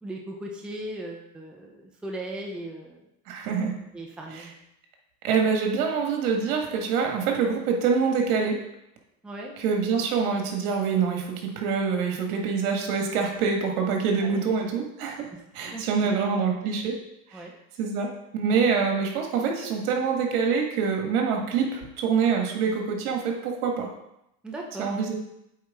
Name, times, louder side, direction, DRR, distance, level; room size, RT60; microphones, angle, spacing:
voice 1, 0.0-3.0 3.9-4.5 9.2-9.5 14.2-14.4 15.7-16.2 17.3-17.5 24.4-25.0, right 1 dB, ahead, -1 dB, 0.7 m, -37 dB
voice 2, 3.3-3.7 4.3-4.5 5.2-8.6 9.6-15.3 15.5-17.0 17.3-17.4 17.8-23.9 24.8-25.1, right 5 dB, 70° right, 2 dB, 1.8 m, -25 dB
8.6 x 4.5 x 3.7 m, 0.84 s
supercardioid pair, 130°, 45 cm